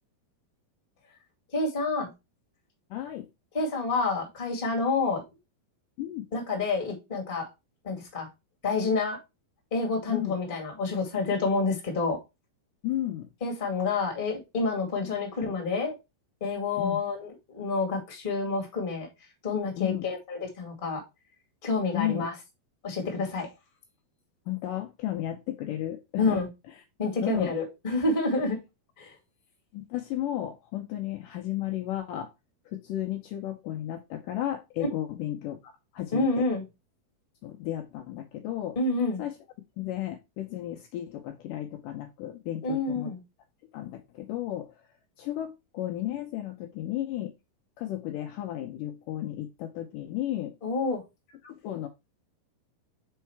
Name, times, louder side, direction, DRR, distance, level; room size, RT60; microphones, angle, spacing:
voice 1, 1.5-2.1 3.5-5.2 6.3-7.4 7.8-8.3 8.6-9.2 9.7-12.2 13.4-15.9 16.4-19.1 19.4-21.0 21.6-22.3 22.8-23.5 26.2-26.5 27.0-28.6 29.0-29.1 36.1-36.6 38.7-39.2 42.6-43.2 50.6-51.0, left 3 dB, 20° left, 0 dB, 1.4 m, -28 dB
voice 2, 2.9-3.3 6.0-6.3 10.1-10.3 12.8-13.3 15.0-15.2 16.8-17.0 19.8-20.1 21.9-22.3 24.5-26.4 26.7-26.8 27.2-27.5 29.7-32.3 32.7-36.5 37.4-38.8 39.2-39.4 39.8-43.1 43.7-44.8 45.2-47.3 47.8-50.6 51.4-51.9, left 13 dB, 80° left, 3 dB, 2.0 m, -33 dB
5.5 x 4.6 x 4.6 m, 0.24 s
omnidirectional pair, 4.4 m